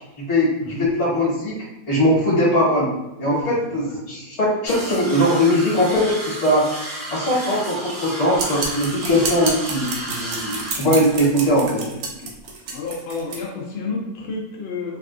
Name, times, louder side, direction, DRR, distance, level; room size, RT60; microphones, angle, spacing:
voice 1, 0.2-1.5 1.9-2.9 3.2-6.6 7.1-11.8, equal, 50° left, -7 dB, 1.5 m, -20 dB
voice 2, 3.2-3.6 3.8-3.9 12.2-12.3 12.7-15.0, left 4 dB, 65° left, -2 dB, 0.6 m, -30 dB
sound 1, 4.7-10.7, right 1 dB, 50° right, 1.3 m, -33 dB
sound 2, 8.4-13.4, right 4 dB, 85° right, 1.1 m, -29 dB
3.4 x 2.3 x 2.4 m, 0.95 s
omnidirectional pair, 1.6 m